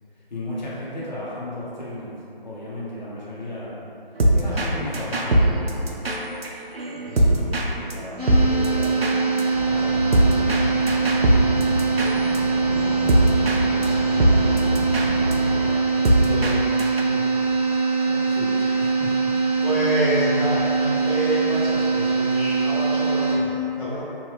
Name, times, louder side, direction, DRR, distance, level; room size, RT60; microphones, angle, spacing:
voice 1, 0.3-3.8 4.3-6.2 6.9-9.2 9.7-10.8 18.3-19.4, left 1 dB, 50° left, -8 dB, 1.0 m, -35 dB
sound 1, 4.2-4.7 4.9-7.6 7.9-8.0 8.2-12.4 12.7-13.6 13.8-13.9 14.2-16.5 16.8-17.0, right 1 dB, 90° right, 0.5 m, -21 dB
voice 2, 4.5-5.0 7.0-7.4 13.7-15.5 15.8-17.6 18.0-18.9 19.6-24.0, right 1 dB, ahead, -30 dB, 0.8 m, -30 dB
sound 2, 8.2-23.3, right 4 dB, 40° right, 1.0 m, -22 dB
sound 3, 9.5-15.7, equal, 85° left, 1.4 m, -31 dB
3.1 x 2.7 x 3.3 m, 2.7 s
figure-of-eight pair, 155°, 29 cm